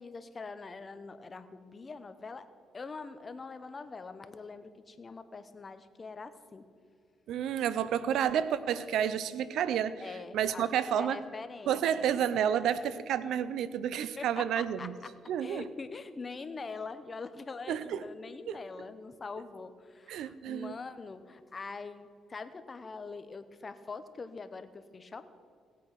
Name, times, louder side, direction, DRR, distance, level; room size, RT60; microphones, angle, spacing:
voice 1, 0.0-2.5 2.7-6.7 10.0-10.7 11.0-12.2 14.2-15.1 15.4-25.2, left 4 dB, 35° left, 11 dB, 0.9 m, -43 dB
voice 2, 7.3-10.0 10.3-11.2 11.7-14.9 15.3-15.7 17.7-18.0 18.5-18.6 20.1-20.7, right 9 dB, 80° right, 15 dB, 0.6 m, -30 dB
17.5 x 8.4 x 6.0 m, 2.2 s
cardioid pair, 90°, 0 cm